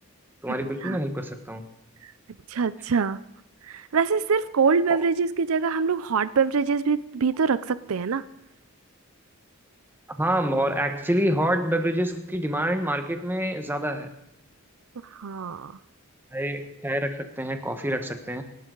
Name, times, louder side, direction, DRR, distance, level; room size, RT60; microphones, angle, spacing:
voice 1, 0.4-1.6 4.9-5.0 10.2-14.1 16.3-18.4, right 1 dB, 10° right, 7 dB, 1.2 m, -27 dB
voice 2, 2.5-3.2 3.6-8.2 15.0-15.8, right 5 dB, 70° right, 16 dB, 0.5 m, -24 dB
26.5 x 12.5 x 3.9 m, 0.81 s
head